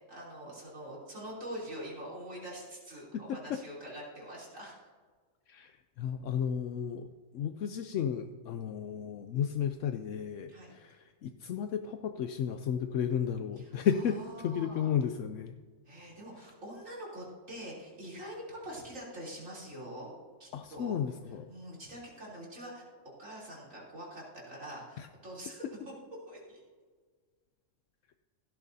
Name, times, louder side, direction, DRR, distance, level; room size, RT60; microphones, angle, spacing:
voice 1, 0.1-4.8 10.5-10.7 13.6-13.7 14.1-14.9 15.9-20.1 20.4-21.0 21.5-22.8 23.2-25.9 26.3-26.6, equal, 80° right, -6 dB, 3.7 m, -44 dB
voice 2, 3.1-3.6 5.5-7.1 7.3-15.5 16.4-16.5 20.5-21.5 25.0-25.1, left 8 dB, 75° left, 8 dB, 0.9 m, -33 dB
16.5 x 12.0 x 2.7 m, 1.5 s
omnidirectional pair, 1.3 m